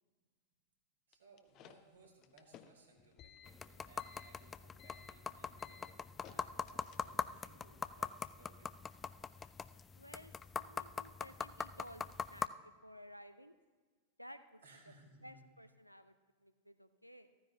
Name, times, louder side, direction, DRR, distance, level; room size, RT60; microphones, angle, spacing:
sound 1, 1.1-7.4, left 8 dB, 35° left, 0.7 m, -59 dB
voice 1, 1.1-8.7 9.4-9.5 14.6-15.5, right 3 dB, 70° right, -1 dB, 2.9 m, -64 dB
sound 2, 3.5-12.5, left 6 dB, 20° left, 0.3 m, -43 dB
voice 2, 9.9-13.5 14.2-14.9 15.2-16.1 16.4-17.3, equal, 90° left, 10 dB, 0.6 m, -56 dB
14.5 x 14.5 x 2.8 m, 1.4 s
figure-of-eight pair, 90°, 0 cm